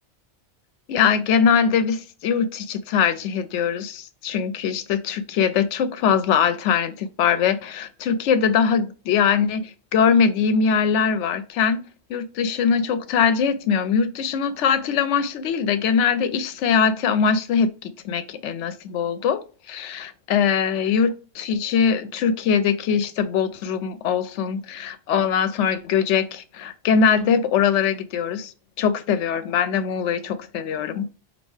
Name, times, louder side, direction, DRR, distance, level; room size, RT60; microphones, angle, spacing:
voice 1, 0.9-11.8 12.1-28.5 28.8-31.1, left 6 dB, 90° left, 0.9 m, -22 dB
5.3 x 2.8 x 3.1 m
omnidirectional pair, 1.2 m